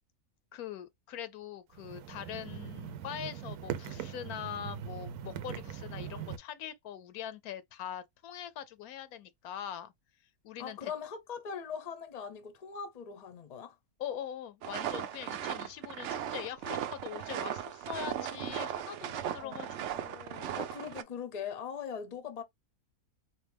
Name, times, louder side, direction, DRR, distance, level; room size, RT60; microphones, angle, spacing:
voice 1, 0.5-9.9 10.4-10.9 14.0-20.6, left 10 dB, 80° left, 1.1 m, -42 dB
sound 1, 1.7-6.4, right 9 dB, 85° right, 1.1 m, -41 dB
voice 2, 10.6-13.8 19.4-19.8 20.5-22.4, left 7 dB, 40° left, 0.6 m, -41 dB
sound 2, 14.6-21.0, right 10 dB, 65° right, 0.7 m, -37 dB
4.2 x 2.7 x 3.4 m
omnidirectional pair, 1.6 m